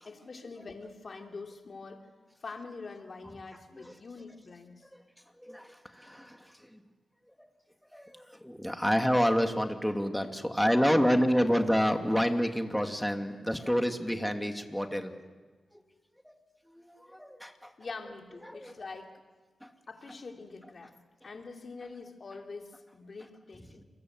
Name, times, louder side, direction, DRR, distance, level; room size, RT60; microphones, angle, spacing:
voice 1, 0.0-2.0 2.4-4.9 17.8-19.1 19.9-21.0 21.2-23.8, left 4 dB, 55° left, 3 dB, 3.3 m, -44 dB
voice 2, 5.4-6.4 7.4-7.5 7.9-15.2 16.3-16.4 16.7-17.7 18.5-18.7, equal, 5° left, 5 dB, 2.7 m, -28 dB
29.0 x 22.5 x 8.0 m, 1.3 s
cardioid pair, 60°, 0 cm